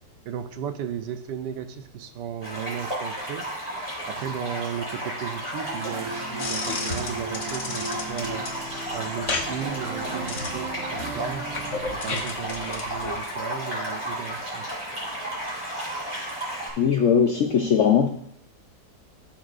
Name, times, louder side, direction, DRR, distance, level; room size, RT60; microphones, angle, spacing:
voice 1, 0.2-3.5 4.1-8.5 8.9-11.5 11.9-14.8, right 8 dB, 80° right, 9 dB, 1.2 m, -35 dB
sound 1, 2.4-16.7, equal, 15° right, 4.2 m, -33 dB
sound 2, 5.6-11.8, right 3 dB, 55° right, 1.3 m, -37 dB
sound 3, 6.4-13.2, left 3 dB, 50° left, 1.3 m, -34 dB
voice 2, 16.8-18.1, left 7 dB, 75° left, 5 dB, 0.7 m, -19 dB
14.5 x 7.2 x 2.5 m, 0.71 s
omnidirectional pair, 1.9 m